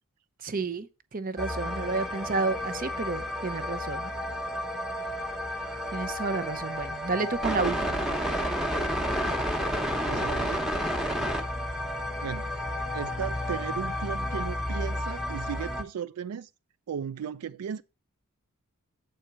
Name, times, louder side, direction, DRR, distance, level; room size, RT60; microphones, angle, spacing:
voice 1, 0.4-4.1 5.9-8.1, right 4 dB, 40° right, 0.7 m, -31 dB
sound 1, 1.4-15.8, equal, ahead, 1.0 m, -31 dB
voice 2, 10.1-10.7 12.2-12.5 12.9-16.5 16.9-17.8, right 8 dB, 80° right, 0.4 m, -36 dB
8.0 x 4.3 x 6.0 m
head